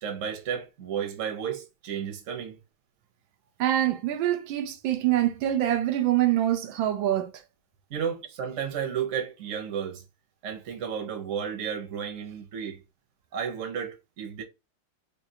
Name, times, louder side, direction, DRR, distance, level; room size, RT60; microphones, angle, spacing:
voice 1, 0.0-2.6 7.9-10.0 10.4-12.8 13.3-14.4, right 8 dB, 50° right, 1.0 m, -33 dB
voice 2, 3.6-7.3, right 12 dB, 80° right, 1.3 m, -25 dB
3.8 x 2.6 x 2.7 m
omnidirectional pair, 2.2 m